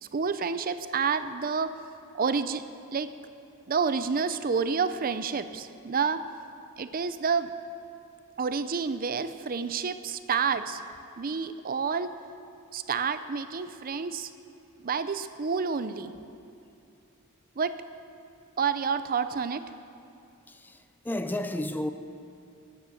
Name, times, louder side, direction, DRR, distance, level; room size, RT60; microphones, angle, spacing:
voice 1, 0.1-1.8 2.1-2.6 2.9-3.1 3.7-6.2 6.8-7.5 8.4-10.8 11.2-12.1 12.7-14.3 14.8-16.1 17.6-17.8 18.6-19.6, right 5 dB, 40° right, 12 dB, 0.6 m, -29 dB
voice 2, 20.5-21.9, left 1 dB, 10° left, 9 dB, 0.4 m, -32 dB
17.5 x 9.3 x 7.1 m, 2.6 s
head